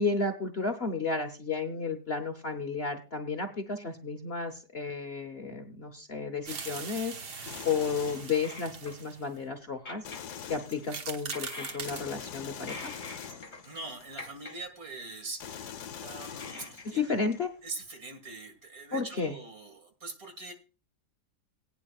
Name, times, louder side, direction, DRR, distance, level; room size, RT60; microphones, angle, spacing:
voice 1, 0.0-10.0 10.5-12.9 16.8-17.5 18.9-19.4, left 4 dB, 45° left, 5 dB, 0.9 m, -32 dB
sound 1, 6.4-9.4 10.3-10.4 10.7-12.0, right 5 dB, 75° right, 1.9 m, -41 dB
sound 2, 7.4-9.0 10.0-11.2 11.9-14.4 15.4-17.4, left 8 dB, 70° left, 1.4 m, -44 dB
sound 3, 8.3-9.1 9.9-10.5 11.2-12.3 12.6-13.7 14.0-14.6 15.6-15.7 16.2-17.3, left 2 dB, 30° left, 1.4 m, -45 dB
voice 2, 13.6-17.0 17.6-20.5, right 3 dB, 55° right, 6 dB, 2.5 m, -43 dB
20.0 x 9.1 x 2.4 m, 0.34 s
omnidirectional pair, 1.8 m